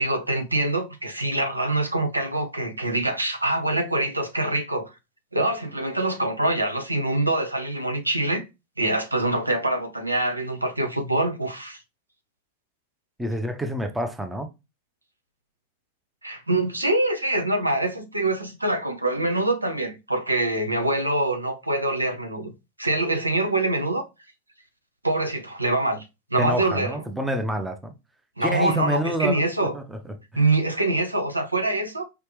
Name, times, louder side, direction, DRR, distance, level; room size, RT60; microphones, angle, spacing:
voice 1, 0.0-4.9 5.3-8.4 8.8-11.8 16.2-22.5 22.8-24.1 25.0-26.0 26.3-27.0 28.4-29.7 30.3-32.0, right 2 dB, 85° right, 0.7 m, -24 dB
voice 2, 13.2-14.5 26.4-27.9 28.4-30.4, right 1 dB, 5° right, 0.8 m, -28 dB
5.0 x 3.3 x 3.1 m
figure-of-eight pair, 90°, 0 cm